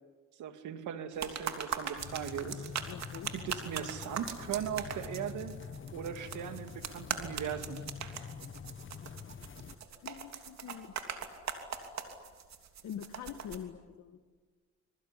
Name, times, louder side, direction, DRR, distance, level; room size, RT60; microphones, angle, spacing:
voice 1, 0.4-2.7 3.3-5.6 5.9-7.8, right 9 dB, 80° right, 8 dB, 2.3 m, -38 dB
sand in a jar for you, 1.1-13.6, right 7 dB, 60° right, 3.1 m, -41 dB
sound 1, 2.0-9.7, left 6 dB, 40° left, 1.5 m, -46 dB
voice 2, 2.9-3.6 10.0-10.9 12.8-14.2, left 9 dB, 70° left, 7 dB, 1.6 m, -44 dB
26.0 x 22.5 x 10.0 m, 1.5 s
cardioid pair, 90°, 30 cm